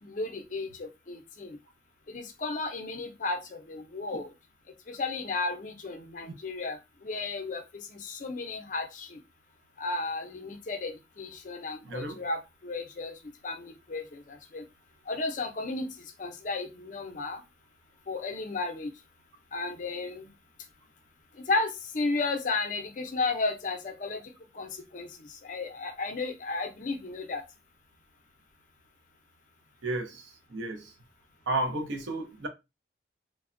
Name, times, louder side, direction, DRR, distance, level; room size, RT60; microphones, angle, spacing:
voice 1, 0.0-1.6 2.1-4.3 4.9-9.2 9.8-14.6 15.1-17.4 18.1-18.9 19.5-20.3 21.3-27.4, left 3 dB, 40° left, 0.4 m, -34 dB
voice 2, 11.8-12.2 29.8-30.9 31.5-32.5, right 2 dB, 80° right, 0.6 m, -33 dB
3.3 x 2.1 x 2.4 m
head